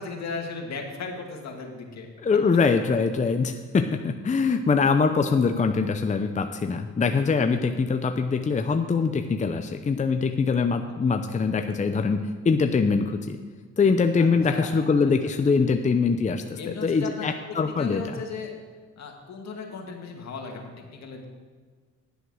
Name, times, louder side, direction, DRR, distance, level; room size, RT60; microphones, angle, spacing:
voice 1, 0.0-2.1 14.2-14.8 16.6-18.5 19.0-21.3, left 4 dB, 60° left, 2 dB, 2.1 m, -36 dB
voice 2, 2.2-13.4 13.8-18.2, left 5 dB, 25° left, 6 dB, 0.6 m, -23 dB
10.5 x 8.0 x 6.2 m, 1.5 s
cardioid pair, 90°, 30 cm